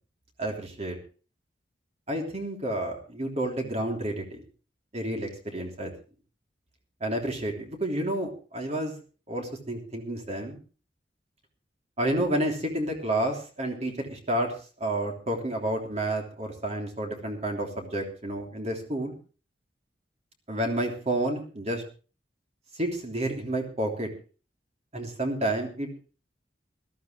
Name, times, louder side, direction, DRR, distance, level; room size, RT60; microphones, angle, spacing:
voice 1, 0.4-1.0 2.1-4.4 4.9-5.9 7.0-9.0 9.3-10.6 12.0-14.5 14.8-19.1 20.5-21.8 22.7-24.1 24.9-25.9, right 1 dB, 40° right, 2 dB, 3.2 m, -30 dB
20.5 x 13.0 x 3.3 m, 0.36 s
head